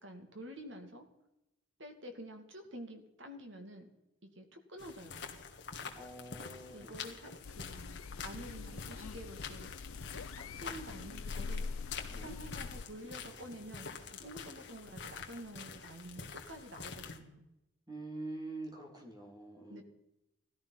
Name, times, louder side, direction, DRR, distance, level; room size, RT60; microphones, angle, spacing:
voice 1, 0.0-1.1 1.8-3.9 4.2-5.4 6.7-9.7 10.6-11.7 12.2-17.5 19.7-19.8, equal, 60° right, 5 dB, 2.5 m, -49 dB
sound 1, 4.8-17.2, left 5 dB, 55° left, 1.8 m, -47 dB
voice 2, 5.9-6.9 12.0-12.4 17.9-19.8, right 2 dB, 20° right, 1 dB, 3.2 m, -45 dB
sound 2, 7.4-12.8, left 4 dB, 85° left, 0.6 m, -44 dB
17.0 x 13.5 x 5.8 m, 0.89 s
head